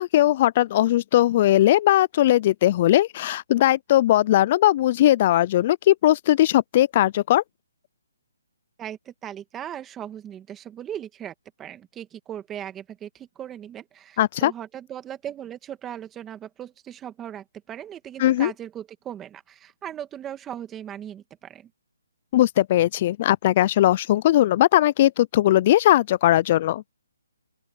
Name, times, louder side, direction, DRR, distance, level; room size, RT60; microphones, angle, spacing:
voice 1, 0.0-7.4 14.2-14.5 18.2-18.5 22.3-26.8, left 14 dB, 35° left, 0.3 m, -19 dB
voice 2, 8.8-21.7, right 10 dB, 10° right, 1.7 m, -38 dB
open air
hypercardioid pair, 160°, 0 cm